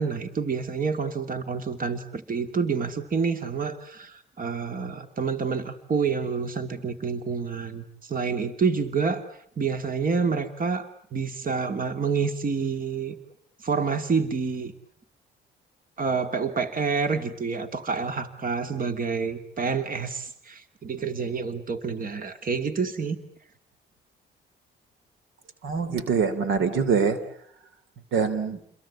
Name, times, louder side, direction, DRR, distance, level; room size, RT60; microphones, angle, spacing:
voice 1, 0.0-9.2 9.6-13.2 13.6-14.7 16.0-23.2, right 5 dB, 45° right, 9 dB, 2.6 m, -28 dB
voice 2, 25.6-27.2 28.1-28.6, right 5 dB, 85° right, 13 dB, 3.2 m, -24 dB
29.5 x 22.5 x 8.7 m, 0.66 s
cardioid pair, 90°, 20 cm